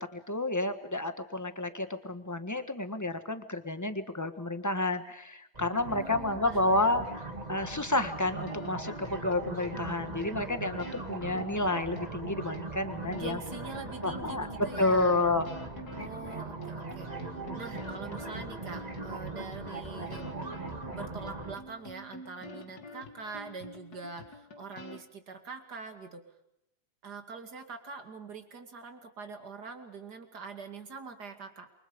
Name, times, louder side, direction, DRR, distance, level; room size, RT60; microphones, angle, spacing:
voice 1, 0.0-7.2 7.5-13.4 14.0-15.5, left 2 dB, 10° left, 9 dB, 1.4 m, -30 dB
sound 1, 5.5-21.6, right 3 dB, 25° right, 2.1 m, -40 dB
voice 2, 5.8-7.1 12.9-15.3 15.9-20.3 20.9-26.2 27.0-31.7, right 4 dB, 80° right, 6 dB, 3.0 m, -44 dB
sound 2, 8.5-9.8 10.2-10.3 10.8-12.2 12.5-12.6 13.1-25.0, left 2 dB, 70° left, 2.4 m, -48 dB
28.5 x 24.5 x 5.3 m, 0.81 s
omnidirectional pair, 1.7 m